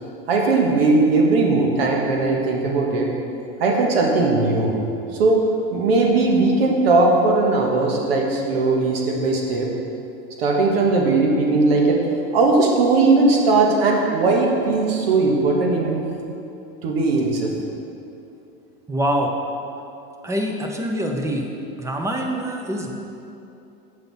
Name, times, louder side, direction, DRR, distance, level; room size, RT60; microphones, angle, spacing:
voice 1, 0.3-3.1 3.6-4.7 5.2-5.4 5.7-9.7 10.4-12.0 12.3-16.0 16.8-17.5, right 3 dB, 80° right, 0 dB, 1.4 m, -18 dB
voice 2, 18.9-19.3 20.2-21.5 21.8-22.9, equal, 10° right, 2 dB, 0.7 m, -24 dB
7.7 x 5.6 x 4.1 m, 2.8 s
supercardioid pair, 125°, 29 cm